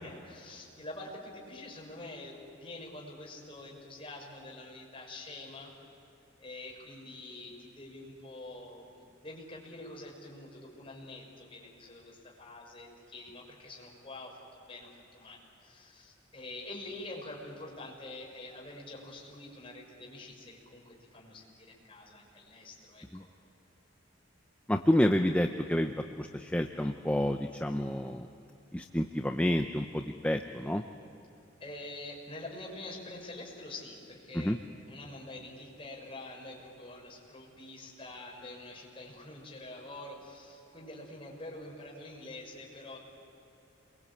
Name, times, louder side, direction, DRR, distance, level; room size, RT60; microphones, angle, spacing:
voice 1, 0.0-5.7 6.4-23.0 31.6-34.6 34.9-43.0, left 2 dB, 30° left, -2 dB, 6.3 m, -46 dB
voice 2, 24.7-28.3 28.7-30.8 34.3-34.6, left 1 dB, 5° left, 5 dB, 0.7 m, -29 dB
28.5 x 23.0 x 8.6 m, 3.0 s
head